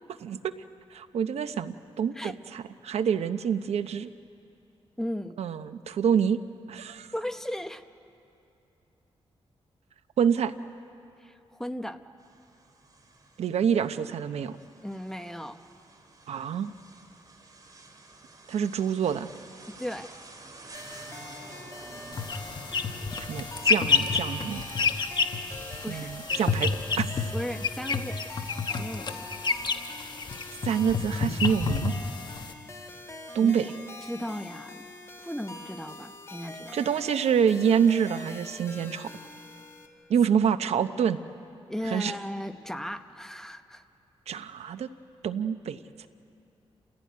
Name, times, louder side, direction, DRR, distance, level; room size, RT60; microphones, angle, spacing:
voice 1, 0.2-0.5 0.9-4.1 5.4-6.4 6.7-7.1 10.2-10.5 13.4-14.6 16.3-16.7 18.5-19.3 23.3-24.6 25.9-27.1 30.6-31.9 33.3-33.7 36.7-39.1 40.1-41.2 41.8-42.2 44.3-44.9 45.2-46.1, right 7 dB, 85° right, 11 dB, 0.8 m, -27 dB
voice 2, 5.0-5.4 7.1-7.8 11.2-12.0 14.8-15.6 19.7-20.1 25.8-26.1 27.3-28.2 28.7-29.3 33.4-33.7 34.1-34.9 35.2-36.7 41.7-43.8, equal, 5° left, 8 dB, 0.9 m, -36 dB
sound 1, 12.2-27.0, right 2 dB, 35° right, 2.5 m, -50 dB
sound 2, 20.7-39.9, left 2 dB, 25° left, 2.1 m, -44 dB
sound 3, 22.1-32.5, left 5 dB, 45° left, 1.2 m, -29 dB
29.5 x 15.5 x 9.5 m, 2.8 s
wide cardioid pair, 125°, 11 cm